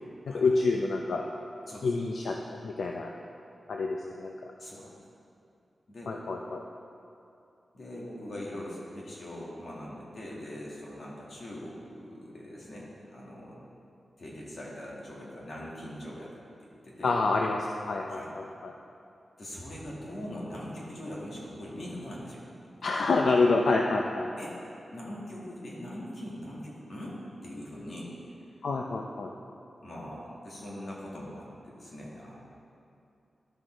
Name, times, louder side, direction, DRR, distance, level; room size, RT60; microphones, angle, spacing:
voice 1, 0.3-1.2 1.8-2.4 2.6-3.1 3.7-4.3 6.1-6.6 17.0-18.7 22.8-24.3 28.6-29.3, left 3 dB, 75° left, 1 dB, 0.5 m, -27 dB
voice 2, 4.6-4.9 5.9-6.1 7.7-13.6 14.2-16.3 16.6-17.2 18.1-18.3 19.4-22.7 24.4-24.6 24.9-28.1 29.8-32.4, left 1 dB, 50° left, -5 dB, 2.0 m, -41 dB
12.0 x 6.4 x 4.5 m, 2.6 s
wide cardioid pair, 180°, 0 cm